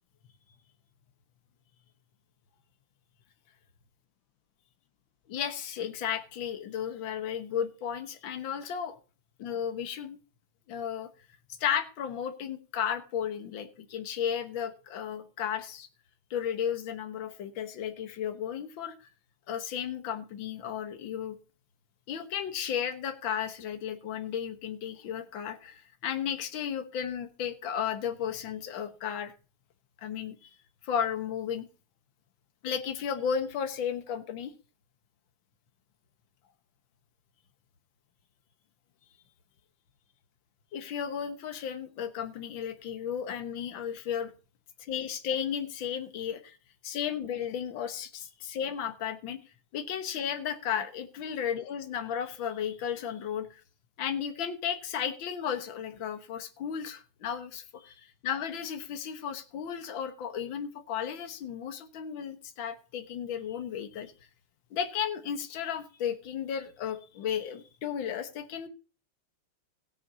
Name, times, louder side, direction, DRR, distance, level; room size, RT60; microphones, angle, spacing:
voice 1, 5.3-9.0 9.4-10.2 10.7-11.1 11.6-15.9 16.3-19.0 19.5-21.4 22.1-29.3 30.0-30.5 30.8-31.7 32.6-34.5 40.7-44.3 44.9-46.6 46.8-49.4 49.7-53.6 54.0-57.9 58.2-64.1 64.7-68.7, left 8 dB, 70° left, 7 dB, 2.0 m, -34 dB
17.0 x 9.6 x 2.8 m, 0.35 s
omnidirectional pair, 2.3 m